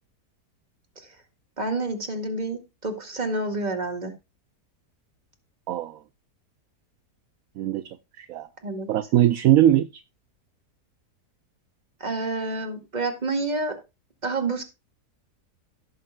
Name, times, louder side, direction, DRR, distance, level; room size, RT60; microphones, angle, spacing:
voice 1, 1.6-4.1 8.6-8.9 12.0-13.8 14.2-14.6, right 2 dB, 25° right, 2.1 m, -28 dB
voice 2, 5.7-6.0 7.6-7.9 8.2-8.5 8.9-10.0, right 12 dB, 65° right, 1.0 m, -21 dB
17.0 x 6.8 x 2.3 m
omnidirectional pair, 1.8 m